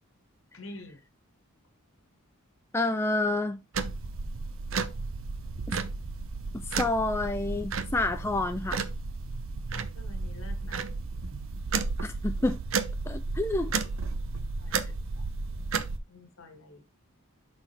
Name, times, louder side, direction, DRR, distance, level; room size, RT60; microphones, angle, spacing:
voice 1, 0.5-1.0 10.0-10.9 14.6-15.2 16.1-16.8, left 2 dB, 65° left, 1.5 m, -47 dB
voice 2, 2.7-3.6 5.7-5.8 6.7-8.8 12.0-12.6 13.1-13.7, left 2 dB, 10° left, 0.3 m, -28 dB
sound 1, 3.7-16.0, right 4 dB, 65° right, 0.7 m, -33 dB
6.0 x 4.5 x 4.4 m
head